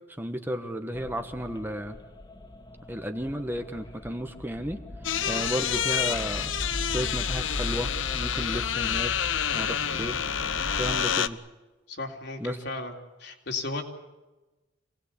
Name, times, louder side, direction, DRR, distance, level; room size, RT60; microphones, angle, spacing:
voice 1, 0.2-2.0 2.9-4.8 5.3-6.5 6.9-9.1 9.5-10.2 10.8-11.4 12.4-12.6, equal, 10° right, 6 dB, 1.4 m, -33 dB
sound 1, 0.9-11.0, left 1 dB, 25° left, 2.1 m, -38 dB
sound 2, 5.0-11.3, left 8 dB, 90° left, 1.0 m, -28 dB
voice 2, 11.9-12.9 13.2-13.8, left 3 dB, 60° left, 3 dB, 3.6 m, -35 dB
27.0 x 19.0 x 8.4 m, 1.1 s
head